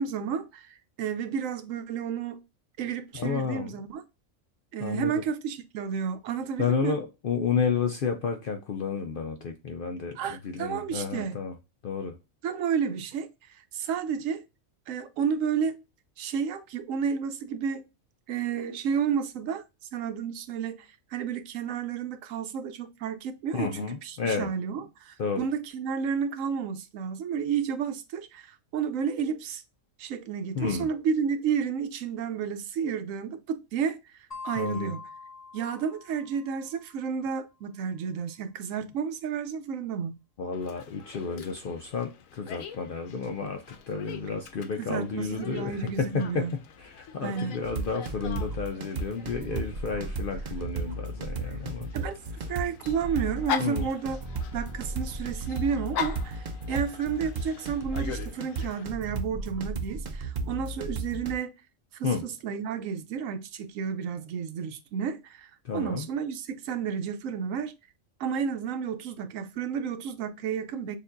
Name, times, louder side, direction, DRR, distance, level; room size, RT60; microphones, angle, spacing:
voice 1, 0.0-2.4 2.8-4.0 4.7-7.0 10.2-11.4 12.4-13.3 13.7-14.4 14.9-15.8 16.2-17.9 18.3-19.6 19.9-29.6 30.0-34.0 34.4-35.0 35.5-40.2 44.8-46.5 47.2-47.6 51.9-52.1 52.5-54.2 54.5-61.5 61.9-67.7 68.2-71.0, right 7 dB, 75° right, 1.0 m, -31 dB
voice 2, 3.1-3.7 4.8-5.2 6.6-11.5 11.8-12.2 23.5-24.5 25.2-25.5 30.5-30.9 34.6-34.9 40.4-51.9 53.6-53.9 62.0-62.3 65.6-66.1, left 5 dB, 65° left, 0.5 m, -31 dB
sound 1, 34.3-36.8, left 4 dB, 35° left, 1.0 m, -43 dB
Dog, 40.5-58.8, left 8 dB, 80° left, 1.0 m, -41 dB
sound 2, 47.6-61.3, right 3 dB, 55° right, 0.5 m, -34 dB
6.5 x 2.5 x 2.5 m
omnidirectional pair, 1.4 m